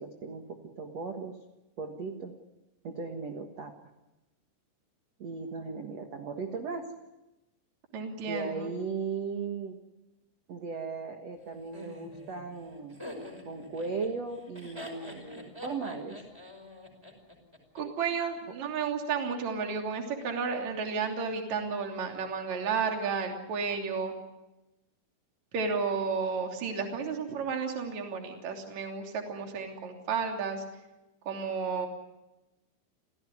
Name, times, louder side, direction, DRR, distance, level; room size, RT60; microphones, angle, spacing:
voice 1, 0.0-1.4 1.8-2.3 2.8-3.7 5.2-6.9 8.1-9.8 10.5-13.0 13.4-16.2, right 4 dB, 85° right, 4 dB, 1.4 m, -37 dB
voice 2, 7.9-8.7 17.7-24.1 25.5-30.6 31.2-31.9, right 5 dB, 40° right, 2 dB, 3.7 m, -32 dB
Laughter, 11.7-17.8, left 1 dB, 5° right, 4.8 m, -45 dB
29.5 x 16.5 x 9.8 m, 1.0 s
omnidirectional pair, 5.9 m